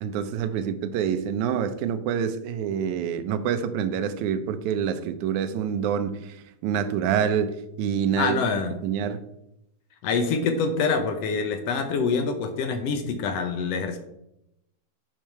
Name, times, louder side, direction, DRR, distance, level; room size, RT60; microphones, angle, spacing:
voice 1, 0.0-8.4 8.8-9.2, right 8 dB, 75° right, 10 dB, 2.0 m, -27 dB
voice 2, 8.2-8.7 10.0-14.0, left 5 dB, 70° left, 7 dB, 1.6 m, -25 dB
9.0 x 5.6 x 4.6 m, 0.84 s
omnidirectional pair, 3.6 m